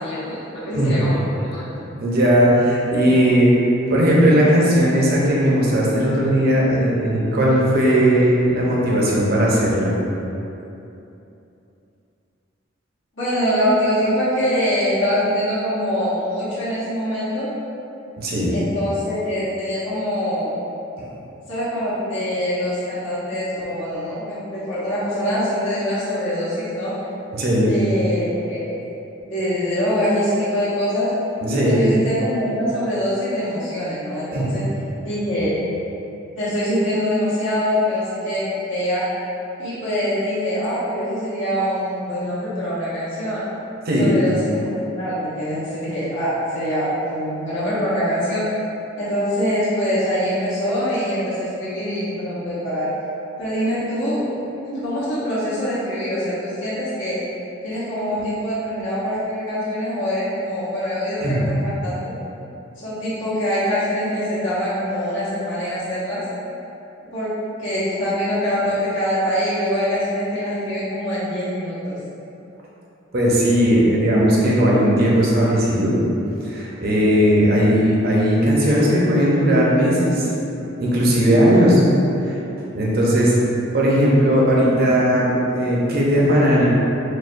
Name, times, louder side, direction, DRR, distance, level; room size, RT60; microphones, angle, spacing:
voice 1, 0.0-1.6 13.2-17.5 18.5-20.6 21.5-26.9 27.7-28.7 29.3-31.1 31.6-34.6 35.0-35.6 36.4-39.1 39.6-43.4 44.0-48.4 49.0-52.9 53.4-54.3 54.7-57.2 57.6-62.1 62.8-66.2 67.1-67.3 67.6-72.0, equal, 70° left, -11 dB, 1.1 m, -24 dB
voice 2, 2.0-3.5 3.9-9.9 18.2-18.5 27.3-27.7 31.4-31.8 34.3-34.5 43.9-44.1 61.2-61.4 73.1-75.9 76.4-80.3 80.8-81.8 82.2-82.3 82.7-83.3 83.7-86.6, equal, 50° right, -5 dB, 0.8 m, -17 dB
6.5 x 2.3 x 2.6 m, 2.9 s
head